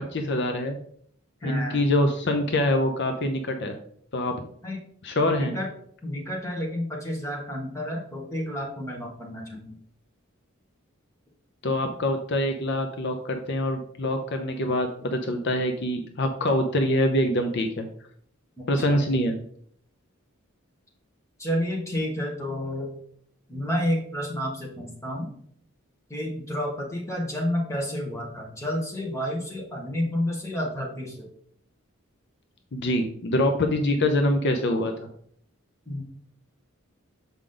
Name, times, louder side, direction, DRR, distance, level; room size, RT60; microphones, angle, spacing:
voice 1, 0.1-0.8 1.4-3.8 4.1-4.3 5.0-5.5 11.6-17.9 18.7-19.3 32.7-35.1, left 1 dB, 60° left, 5 dB, 0.7 m, -25 dB
voice 2, 1.4-1.9 4.6-4.8 5.2-5.7 6.0-9.8 18.6-19.0 21.4-23.0 23.5-25.3 26.1-31.3 35.9-36.0, left 1 dB, 15° left, -2 dB, 1.8 m, -30 dB
7.3 x 5.0 x 3.8 m, 0.63 s
head